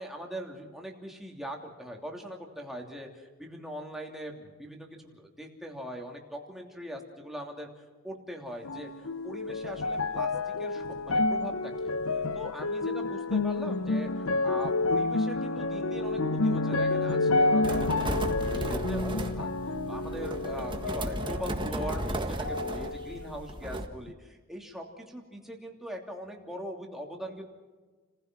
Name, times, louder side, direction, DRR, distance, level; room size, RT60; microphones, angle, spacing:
voice 1, 0.0-8.9 9.2-19.5 19.9-27.5, equal, ahead, 0 dB, 3.0 m, -41 dB
sound 1, 8.6-22.1 22.4-23.4 24.1-24.2, left 3 dB, 85° left, 0.8 m, -29 dB
sound 2, 17.6-23.9, right 1 dB, 25° right, 1.7 m, -34 dB
30.0 x 16.0 x 6.1 m, 1.3 s
head